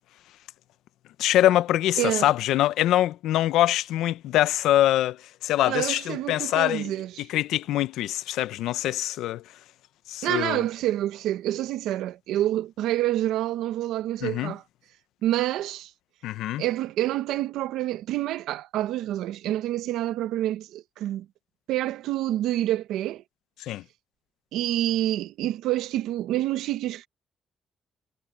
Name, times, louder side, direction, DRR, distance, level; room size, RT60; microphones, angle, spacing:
voice 1, 1.2-5.2 5.4-9.4 10.1-10.6 14.2-14.5 16.2-16.6 23.6-23.8, left 13 dB, 85° left, 0.6 m, -24 dB
voice 2, 2.0-2.3 5.7-7.3 10.2-14.6 15.2-15.9 16.6-21.3 21.7-23.2 24.5-27.1, right 13 dB, 90° right, 1.0 m, -27 dB
cardioid pair, 90°, 0 cm